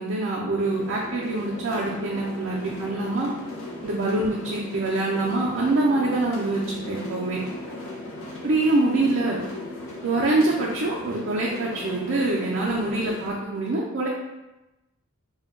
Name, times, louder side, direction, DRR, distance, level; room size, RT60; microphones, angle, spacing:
voice 1, 0.0-3.3 3.8-7.4 8.4-9.4 10.0-14.1, right 2 dB, 55° right, -4 dB, 0.4 m, -25 dB
sound 1, 0.6-13.3, left 2 dB, 65° left, 0.5 m, -37 dB
2.2 x 2.1 x 3.6 m, 1.0 s
head